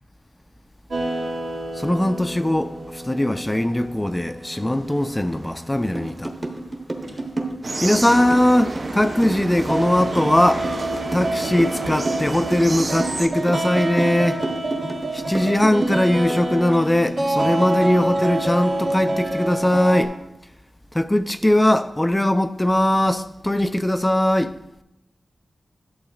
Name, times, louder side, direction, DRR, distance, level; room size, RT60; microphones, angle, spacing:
sound 1, 0.9-7.2 7.8-7.9 8.8-9.0 9.5-20.0, right 1 dB, 90° right, 2.3 m, -28 dB
voice 1, 1.7-6.4 7.8-10.7 11.1-14.4 15.1-20.1 20.9-24.6, left 1 dB, 15° left, 0.4 m, -20 dB
sound 2, 5.9-16.5, right 2 dB, 30° right, 1.1 m, -30 dB
sound 3, 7.6-13.3, right 2 dB, 45° right, 0.5 m, -30 dB
11.5 x 7.8 x 2.4 m
wide cardioid pair, 85°, 0 cm